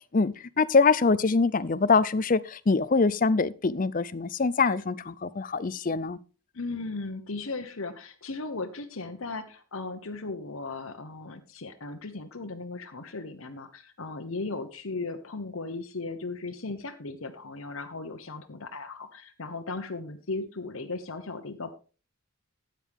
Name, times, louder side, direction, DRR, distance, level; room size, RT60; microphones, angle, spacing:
voice 1, 0.1-6.2, left 4 dB, 40° left, 0.5 m, -24 dB
voice 2, 6.5-21.7, left 3 dB, 75° left, 1.0 m, -37 dB
13.0 x 9.1 x 3.6 m
head